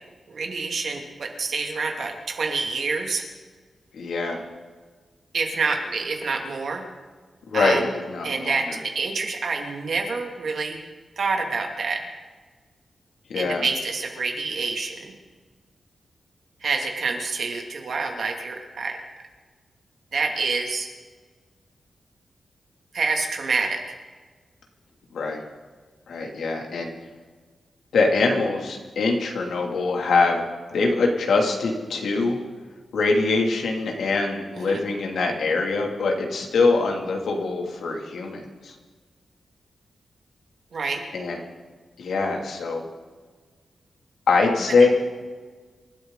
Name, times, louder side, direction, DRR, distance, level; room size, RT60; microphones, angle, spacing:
voice 1, 0.3-3.2 5.3-6.8 7.5-7.9 8.2-10.8 11.2-12.0 13.3-15.1 16.6-19.0 20.1-20.9 22.9-23.9 34.5-34.8 40.7-41.0, right 4 dB, 60° right, 2 dB, 2.6 m, -27 dB
voice 2, 3.9-4.4 7.5-8.6 13.3-13.6 25.1-25.4 26.1-26.9 27.9-30.4 30.7-32.4 32.9-38.7 41.1-41.4 42.0-42.8 44.3-44.9, left 3 dB, 90° left, 1 dB, 2.7 m, -23 dB
27.0 x 13.0 x 4.0 m, 1.4 s
wide cardioid pair, 150°, 0 cm